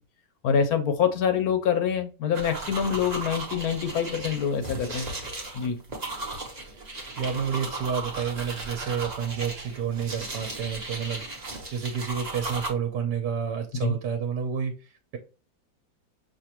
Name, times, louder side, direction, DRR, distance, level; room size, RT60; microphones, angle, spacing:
voice 1, 0.4-5.1 5.5-5.8 13.8-13.9, left 7 dB, 65° left, 1.0 m, -25 dB
sound 1, 2.3-12.7, right 2 dB, 30° right, 0.7 m, -36 dB
voice 2, 7.2-15.2, right 7 dB, 65° right, 1.3 m, -30 dB
6.3 x 2.6 x 2.9 m
omnidirectional pair, 2.1 m